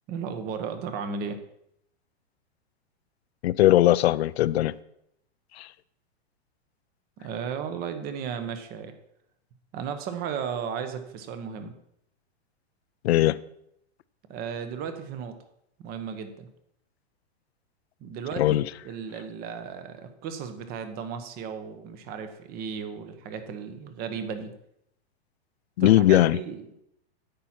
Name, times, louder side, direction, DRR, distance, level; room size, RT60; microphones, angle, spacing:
voice 1, 0.1-1.4 7.2-8.9 9.7-11.8 14.3-15.4 15.8-16.5 18.0-24.5 25.8-26.7, right 6 dB, 30° right, 1.1 m, -35 dB
voice 2, 3.4-4.7 5.6-5.7 13.0-13.4 18.4-18.7 25.8-26.4, left 14 dB, 75° left, 0.6 m, -19 dB
10.5 x 8.6 x 4.4 m
supercardioid pair, 150°, 32 cm